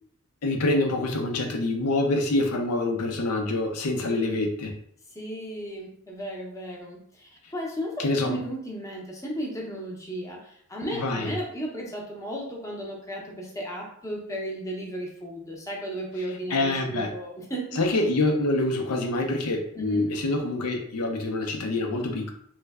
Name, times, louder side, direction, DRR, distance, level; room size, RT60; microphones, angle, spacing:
voice 1, 0.4-4.7 8.0-8.4 10.9-11.3 16.5-17.1 17.7-22.3, left 2 dB, 85° left, 3 dB, 0.6 m, -26 dB
voice 2, 4.1-4.4 5.1-17.8 19.7-20.1, equal, 15° left, -2 dB, 0.6 m, -35 dB
3.2 x 2.1 x 3.4 m, 0.65 s
head